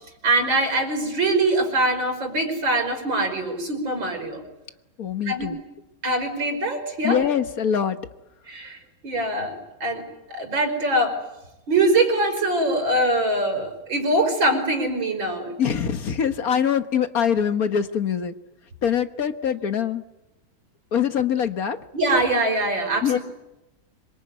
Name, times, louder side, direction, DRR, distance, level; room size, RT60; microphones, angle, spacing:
voice 1, 0.2-4.4 5.3-5.5 6.0-7.2 8.5-8.8 9.0-9.5 9.8-10.0 10.3-11.2 11.7-15.5 21.9-23.2, right 2 dB, 70° right, 5 dB, 6.0 m, -23 dB
voice 2, 5.0-5.6 7.0-8.0 15.6-18.3 18.8-20.0 20.9-21.8 23.0-23.2, left 8 dB, 50° left, 9 dB, 1.6 m, -23 dB
26.0 x 23.5 x 9.6 m, 0.96 s
omnidirectional pair, 2.2 m